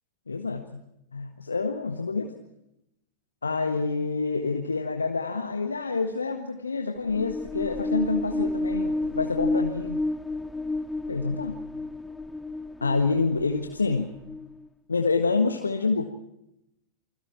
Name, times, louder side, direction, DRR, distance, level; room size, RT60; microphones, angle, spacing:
voice 1, 0.3-0.8 1.1-2.3 3.4-10.0 11.1-11.6 12.8-14.2 14.9-16.0, left 4 dB, 75° left, 5 dB, 1.5 m, -27 dB
sound 1, 7.0-14.7, left 2 dB, 5° left, 1.0 m, -31 dB
28.5 x 21.5 x 4.4 m, 0.85 s
figure-of-eight pair, 90°, 0 cm